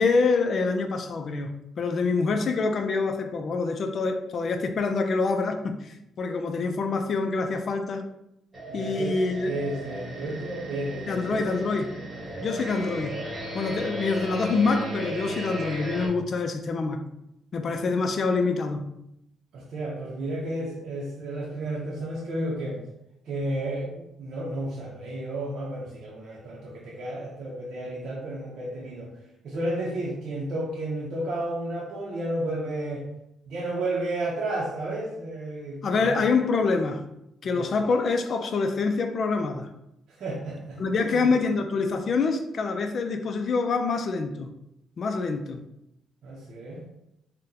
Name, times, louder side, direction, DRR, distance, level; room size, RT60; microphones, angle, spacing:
voice 1, 0.0-8.0 8.7-9.5 11.1-11.9 12.4-13.1 13.5-17.0 17.5-18.8 35.8-37.0 37.4-39.7 40.8-44.5 45.0-45.6, left 4 dB, 50° left, 6 dB, 0.4 m, -26 dB
sound 1, 8.5-16.1, right 1 dB, 35° right, 1.2 m, -36 dB
voice 2, 8.7-9.1 9.5-11.6 12.1-12.5 19.5-22.8 23.2-29.1 29.4-33.0 33.5-36.2 37.4-37.7 40.1-41.3 46.2-46.9, right 1 dB, 70° right, -5 dB, 0.6 m, -32 dB
3.7 x 2.2 x 2.7 m, 0.82 s
cardioid pair, 90°, 0 cm